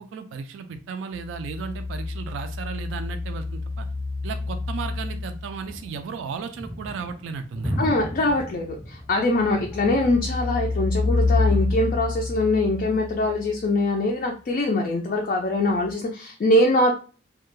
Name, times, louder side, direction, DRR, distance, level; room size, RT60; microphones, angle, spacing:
voice 1, 0.0-3.9 4.2-7.8, right 5 dB, 70° right, 8 dB, 0.3 m, -34 dB
sound 1, 1.1-5.8 9.1-13.7 15.8-15.9, left 3 dB, 90° left, 0.6 m, -28 dB
sound 2, 5.6-11.6, equal, 10° right, 0.6 m, -36 dB
voice 2, 7.8-16.9, left 2 dB, 45° left, 1 dB, 0.3 m, -23 dB
2.2 x 2.1 x 3.0 m, 0.38 s
head